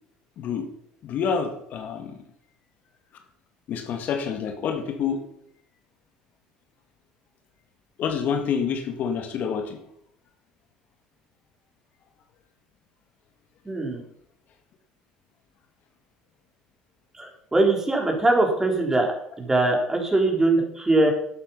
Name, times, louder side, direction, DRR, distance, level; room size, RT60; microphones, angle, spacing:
voice 1, 1.0-2.1 3.7-5.2 8.0-9.8, left 7 dB, 55° left, 5 dB, 2.2 m, -27 dB
voice 2, 13.7-14.0 17.2-19.1 19.4-21.1, right 2 dB, 15° right, 2 dB, 4.3 m, -21 dB
11.5 x 8.8 x 5.7 m, 0.69 s
hypercardioid pair, 75°, 3 cm